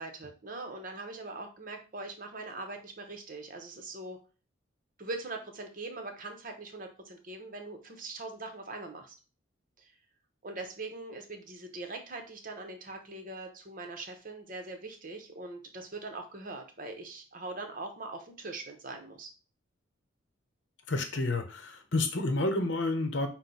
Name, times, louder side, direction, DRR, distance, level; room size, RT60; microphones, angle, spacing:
voice 1, 0.0-4.2 5.0-9.1 9.8-9.9 10.4-19.3, right 2 dB, 45° right, 4 dB, 0.9 m, -42 dB
voice 2, 20.9-23.3, left 2 dB, 60° left, 6 dB, 0.8 m, -30 dB
6.1 x 2.2 x 3.9 m, 0.34 s
head